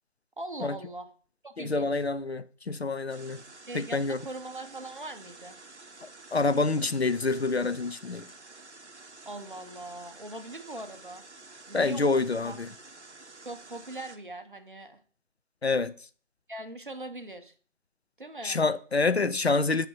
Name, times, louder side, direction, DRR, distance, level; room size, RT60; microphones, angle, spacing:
voice 1, 0.4-1.1 1.4-2.0 3.7-5.6 9.3-11.2 11.7-12.6 13.4-15.0 16.5-17.5 18.2-18.6, right 2 dB, 45° right, 0.8 m, -41 dB
voice 2, 1.6-3.4 3.7-4.2 6.0-8.3 11.7-12.7 15.6-15.9 18.4-19.9, left 3 dB, 60° left, 0.5 m, -27 dB
sound 1, 3.1-14.2, right 3 dB, 65° right, 0.9 m, -50 dB
6.5 x 5.0 x 6.1 m
figure-of-eight pair, 165°, 37 cm